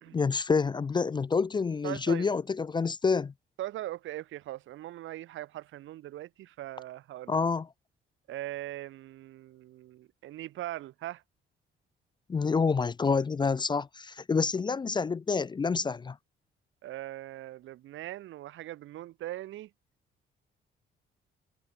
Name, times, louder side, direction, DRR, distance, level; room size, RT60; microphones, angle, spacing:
voice 1, 0.1-3.3 7.3-7.7 12.3-16.2, left 5 dB, 25° left, 0.4 m, -28 dB
voice 2, 1.8-2.3 3.6-7.3 8.3-11.2 16.8-19.7, right 14 dB, 80° right, 1.1 m, -40 dB
cardioid pair, 90°, 20 cm